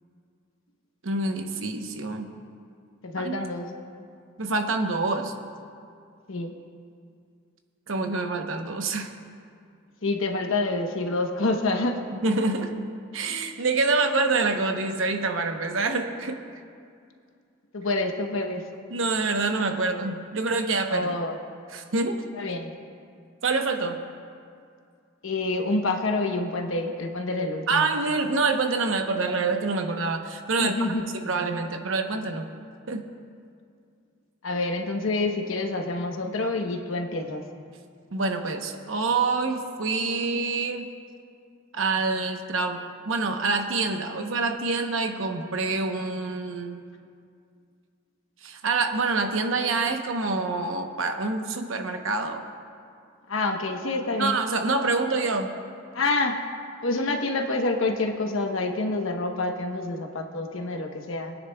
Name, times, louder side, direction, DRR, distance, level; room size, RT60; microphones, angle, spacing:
voice 1, 1.0-2.3 3.2-3.4 4.4-5.3 7.9-9.1 12.2-12.7 13.1-16.4 18.9-21.2 21.7-22.2 23.4-24.0 27.7-30.8 31.1-32.5 32.9-33.1 38.1-40.9 41.7-46.8 48.4-52.4 54.2-55.5, right 3 dB, 80° right, 5 dB, 0.9 m, -26 dB
voice 2, 3.0-3.7 6.3-6.5 10.0-12.0 17.7-18.6 20.9-21.3 22.3-22.7 25.2-27.9 30.6-31.0 34.4-37.4 53.3-54.3 55.9-56.4 56.8-61.4, left 2 dB, 85° left, 3 dB, 1.0 m, -27 dB
22.5 x 9.8 x 2.3 m, 2.3 s
head